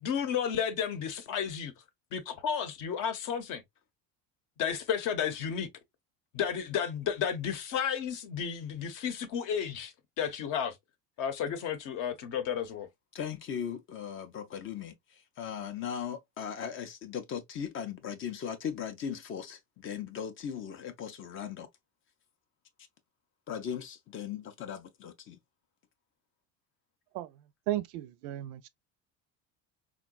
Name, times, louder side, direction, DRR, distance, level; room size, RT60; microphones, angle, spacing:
voice 1, 0.0-1.7 2.1-3.6 4.6-5.7 6.3-10.7 11.2-12.9, left 8 dB, 55° left, 0.8 m, -32 dB
voice 2, 13.1-21.7 23.5-25.4, left 8 dB, 35° left, 0.4 m, -38 dB
voice 3, 27.7-28.7, right 14 dB, 70° right, 0.5 m, -34 dB
3.7 x 2.2 x 2.2 m
cardioid pair, 135°, 38 cm